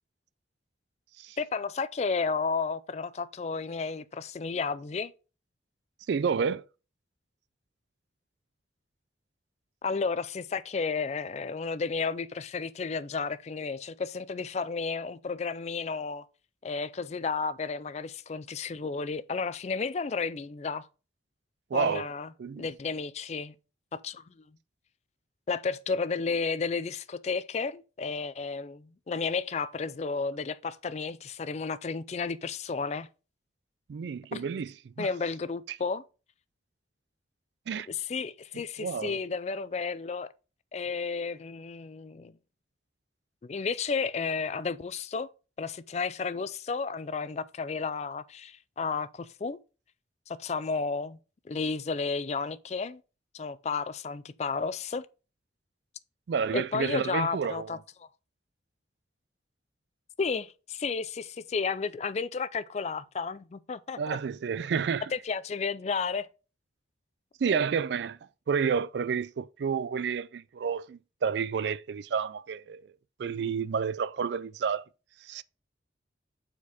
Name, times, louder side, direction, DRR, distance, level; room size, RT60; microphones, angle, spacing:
voice 1, 1.4-5.1 9.8-16.3 16.6-20.9 21.7-22.3 22.6-23.5 23.9-24.2 25.5-33.1 34.3-34.5 35.0-36.0 37.9-40.3 40.7-42.3 43.4-45.3 45.6-49.6 50.3-51.2 51.5-53.0 53.3-55.1 56.5-57.8 60.2-64.2 65.1-66.3 67.5-67.6, left 4 dB, 35° left, 0.4 m, -32 dB
voice 2, 6.1-6.6 21.7-22.0 22.4-22.7 33.9-35.1 35.7-35.8 37.7-37.9 38.8-39.2 56.3-57.8 64.0-65.0 67.4-68.2 68.5-72.8 73.2-74.8 75.3-75.4, right 6 dB, 65° right, 0.3 m, -30 dB
7.2 x 4.5 x 4.1 m
head